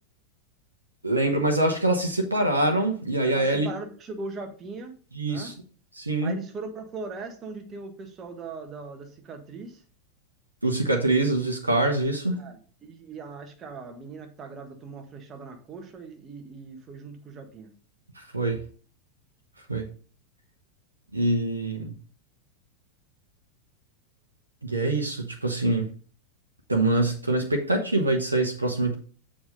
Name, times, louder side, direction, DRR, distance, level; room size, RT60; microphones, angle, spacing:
voice 1, 1.0-3.7 5.1-5.5 5.9-6.3 10.6-12.5 18.2-18.6 19.7-19.8 21.1-22.0 24.6-25.9 26.7-28.9, right 2 dB, 80° right, 2 dB, 1.0 m, -24 dB
voice 2, 3.2-5.0 5.3-5.5 6.2-9.8 12.3-17.7, right 4 dB, 25° right, 5 dB, 1.6 m, -40 dB
7.1 x 5.1 x 5.2 m, 0.42 s
figure-of-eight pair, 90°, 0 cm